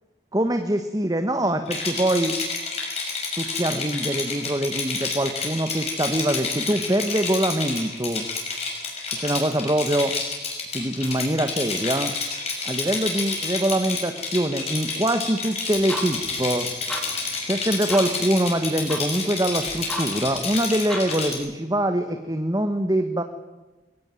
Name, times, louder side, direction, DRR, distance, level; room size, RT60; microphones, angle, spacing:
voice 1, 0.3-2.3 3.4-8.3 9.1-10.1 10.7-12.1 12.6-16.7 17.4-23.2, right 1 dB, 20° right, 7 dB, 1.3 m, -24 dB
Rattle, 1.7-21.4, left 4 dB, 35° left, 6.3 m, -29 dB
sound 1, 15.7-21.3, equal, 5° left, 3.5 m, -37 dB
21.5 x 18.0 x 9.1 m, 1.1 s
head